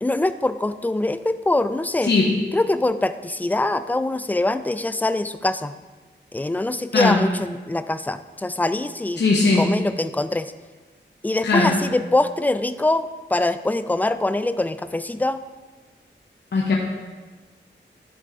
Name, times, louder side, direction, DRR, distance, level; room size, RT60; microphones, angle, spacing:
voice 1, 0.0-2.1 2.5-5.7 6.3-9.2 9.6-10.5 11.2-15.4, left 2 dB, 10° left, 12 dB, 0.3 m, -23 dB
voice 2, 2.0-2.3 6.9-7.2 9.2-9.7 11.4-11.7 16.5-16.8, left 3 dB, 65° left, -3 dB, 1.0 m, -18 dB
11.0 x 4.5 x 3.8 m, 1.3 s
wide cardioid pair, 75°, 19 cm